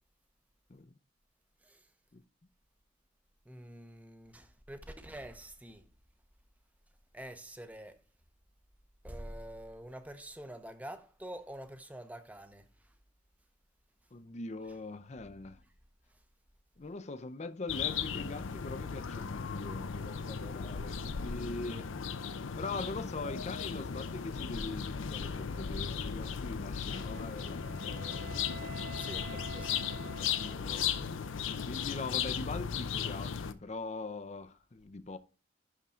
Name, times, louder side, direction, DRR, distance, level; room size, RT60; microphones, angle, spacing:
voice 1, 1.6-1.9 3.4-5.9 7.1-8.0 9.0-13.0 14.6-14.8 15.6-15.7 16.1-16.2 28.9-29.8, right 1 dB, 10° right, 0.7 m, -47 dB
voice 2, 14.1-15.6 16.8-21.9 22.6-28.3 29.3-30.9 31.7-35.2, left 3 dB, 35° left, 0.5 m, -42 dB
sound 1, 17.7-33.5, left 7 dB, 85° left, 0.5 m, -36 dB
Wind instrument woodwind instrument, 26.9-31.1, right 2 dB, 55° right, 1.1 m, -49 dB
11.0 x 3.7 x 4.2 m
head